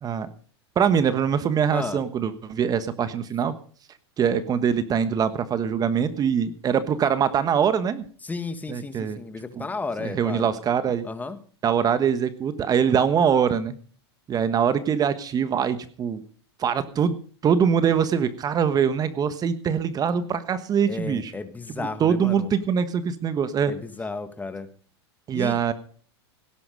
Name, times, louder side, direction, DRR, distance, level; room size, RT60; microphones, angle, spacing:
voice 1, 0.7-3.5 4.2-8.0 8.7-9.2 9.5-9.6 10.0-11.1 11.6-13.8 14.3-16.2 16.6-17.1 17.4-21.3 21.8-23.7 25.3-25.7, right 7 dB, 25° right, 12 dB, 1.3 m, -23 dB
voice 2, 1.7-2.0 8.2-10.5 11.0-11.4 20.9-22.5 23.7-24.7 25.3-25.6, left 3 dB, 10° left, 10 dB, 1.7 m, -33 dB
17.5 x 11.0 x 5.3 m, 0.43 s
hypercardioid pair, 115°, 14 cm